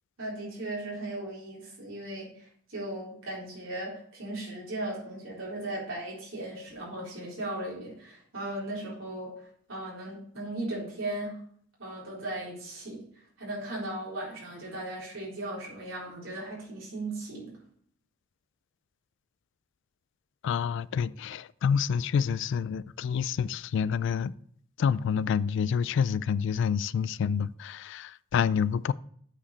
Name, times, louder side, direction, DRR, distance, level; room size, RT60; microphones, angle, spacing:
voice 1, 0.2-11.4 11.8-17.6, right 1 dB, 75° right, 3.8 m, -37 dB
voice 2, 20.4-24.3 24.8-28.9, left 7 dB, 65° left, 0.3 m, -28 dB
8.5 x 5.0 x 4.3 m
head